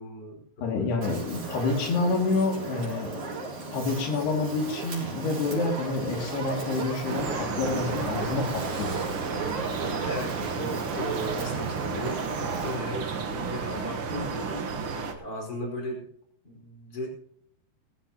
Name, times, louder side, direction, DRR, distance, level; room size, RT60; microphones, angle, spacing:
voice 1, 0.0-1.0 10.0-16.1 16.4-17.1, equal, 25° left, -1 dB, 5.4 m, -37 dB
voice 2, 0.6-3.1 3.7-8.9, left 3 dB, 85° left, 1 dB, 4.5 m, -28 dB
Fire, 1.0-12.8, right 3 dB, 55° right, 5.4 m, -35 dB
sound 1, 7.0-15.1, right 5 dB, 75° right, 1.2 m, -32 dB
20.0 x 14.0 x 2.9 m, 0.69 s
omnidirectional pair, 4.5 m